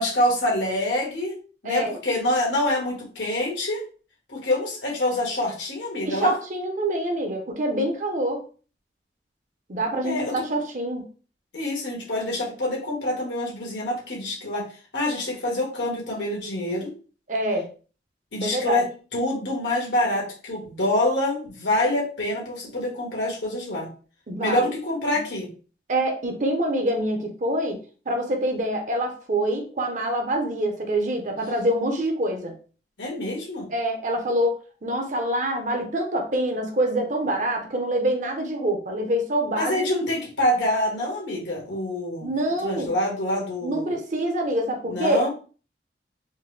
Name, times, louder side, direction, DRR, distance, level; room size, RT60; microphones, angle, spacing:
voice 1, 0.0-1.4 1.6-3.8 4.3-6.4 10.0-10.4 11.5-14.7 14.9-16.9 18.3-23.9 24.4-25.5 33.0-33.7 39.5-42.3 42.6-43.9 44.9-45.3, left 1 dB, 90° left, -2 dB, 1.6 m, -26 dB
voice 2, 1.6-2.0 6.0-8.4 9.7-11.0 17.3-17.7 18.4-18.8 24.3-24.7 25.9-27.8 28.1-32.5 33.7-34.6 34.8-39.8 42.2-42.9 43.6-45.3, right 1 dB, 45° right, 3 dB, 0.8 m, -25 dB
4.4 x 2.2 x 3.3 m, 0.37 s
head